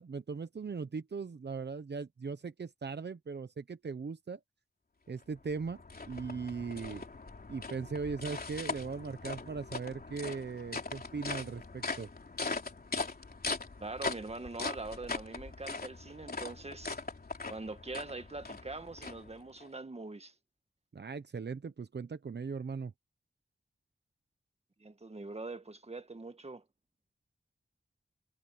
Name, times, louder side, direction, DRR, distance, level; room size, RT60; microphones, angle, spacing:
voice 1, 0.0-4.4 5.1-5.8 6.1-7.0 7.5-12.1 20.9-22.9, right 5 dB, 65° right, 1.0 m, -39 dB
sound 1, 5.2-19.7, left 3 dB, 55° left, 3.4 m, -41 dB
voice 2, 13.8-17.0 17.5-20.3 24.8-26.6, right 3 dB, 35° right, 1.8 m, -43 dB
wide cardioid pair, 75°, 19 cm